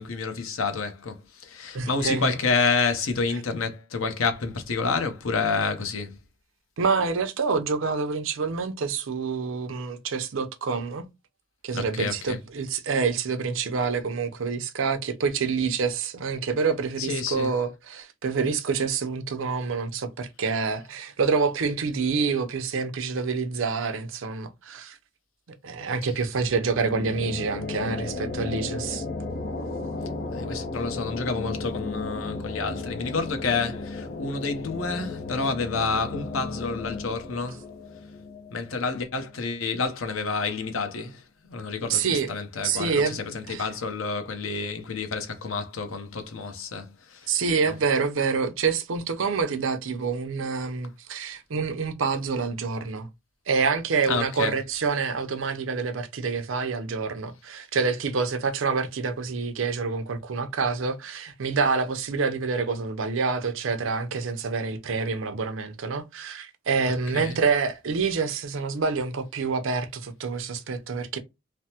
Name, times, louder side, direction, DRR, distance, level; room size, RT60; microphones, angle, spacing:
voice 1, 0.0-6.2 11.7-12.4 17.0-17.5 30.3-37.6 38.5-41.2 41.5-47.4 47.7-47.8 54.1-54.5 67.1-67.4, left 4 dB, 90° left, 0.7 m, -29 dB
voice 2, 1.7-2.3 6.8-11.1 11.6-25.0 25.6-29.0 41.9-42.3 42.6-43.2 43.5-43.7 47.3-53.1 53.5-71.2, right 5 dB, 80° right, 0.5 m, -27 dB
sound 1, 26.4-39.7, left 3 dB, 50° left, 0.6 m, -35 dB
3.3 x 2.0 x 2.8 m
head